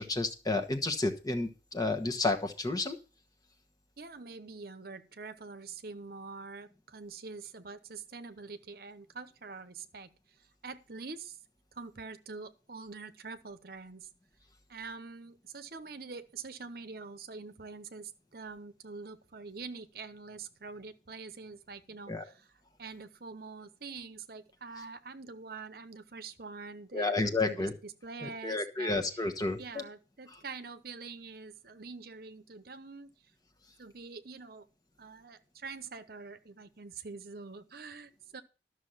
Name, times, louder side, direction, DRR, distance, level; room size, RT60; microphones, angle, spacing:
voice 1, 0.0-3.0 22.1-22.2 26.9-27.7 28.2-29.8, left 2 dB, 20° left, 5 dB, 1.2 m, -31 dB
voice 2, 4.0-10.1 10.6-11.4 11.7-14.1 14.7-29.3 29.6-33.1 33.8-34.7 35.0-38.4, right 4 dB, 60° right, 11 dB, 0.9 m, -45 dB
12.5 x 6.4 x 5.7 m, 0.33 s
head